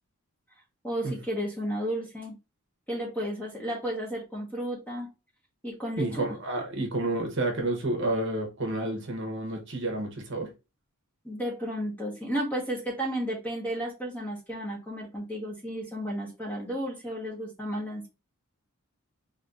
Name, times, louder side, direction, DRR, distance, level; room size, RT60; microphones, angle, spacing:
voice 1, 0.8-2.4 2.9-5.1 5.6-6.3 11.2-18.1, equal, 10° left, -2 dB, 1.3 m, -33 dB
voice 2, 6.0-10.5, right 2 dB, 55° right, 2 dB, 1.0 m, -30 dB
4.3 x 3.0 x 2.5 m, 0.28 s
head